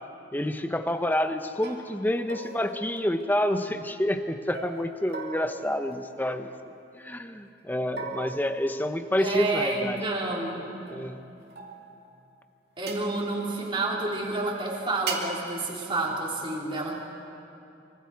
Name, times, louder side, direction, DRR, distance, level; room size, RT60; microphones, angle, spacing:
voice 1, 0.3-6.5 6.9-10.0 10.9-11.2, left 1 dB, 10° left, 8 dB, 0.8 m, -28 dB
sound 1, 1.0-1.2 1.6-1.9 2.3-3.7 4.5-6.8 8.0-9.4 10.9-12.1 12.9-13.1 15.1-15.4, right 4 dB, 55° right, 2.4 m, -39 dB
voice 2, 9.2-10.7 12.8-16.9, right 2 dB, 25° right, -3 dB, 3.4 m, -29 dB
25.5 x 24.5 x 4.7 m, 2.7 s
head